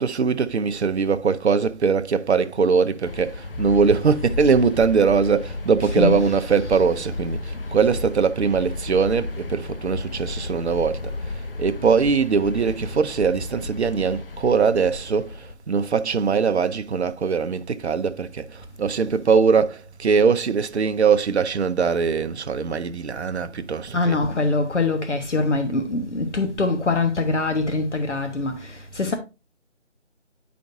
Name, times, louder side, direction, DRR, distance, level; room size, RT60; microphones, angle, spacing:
voice 1, 0.0-24.2, right 5 dB, 65° right, 0.6 m, -21 dB
sound 1, 3.0-15.5, left 3 dB, 50° left, 0.4 m, -33 dB
voice 2, 5.8-6.8 23.9-29.1, left 3 dB, 75° left, 1.1 m, -24 dB
9.3 x 5.1 x 2.6 m
figure-of-eight pair, 165°, 36 cm